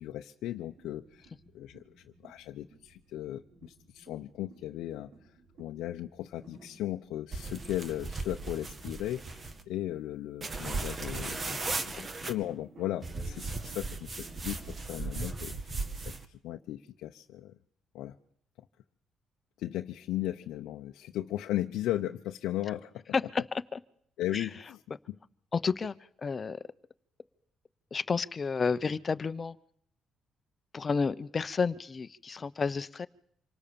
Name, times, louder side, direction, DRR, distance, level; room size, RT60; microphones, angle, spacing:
voice 1, 0.0-5.3 5.6-15.8 16.3-17.5 17.9-18.2 19.6-23.0 24.2-24.8 25.1-25.2, left 13 dB, 90° left, 4 dB, 0.9 m, -37 dB
sound 1, 0.6-16.1, right 3 dB, 65° right, 7.7 m, -58 dB
sound 2, 7.3-9.6 10.4-12.3 13.0-16.2, right 3 dB, 35° right, 2.1 m, -37 dB
voice 2, 11.7-12.1 23.1-23.8 24.3-24.5 25.5-26.6 27.9-29.6 30.7-33.1, left 5 dB, 35° left, 14 dB, 1.0 m, -31 dB
26.5 x 19.0 x 7.1 m, 0.68 s
cardioid pair, 90°, 0 cm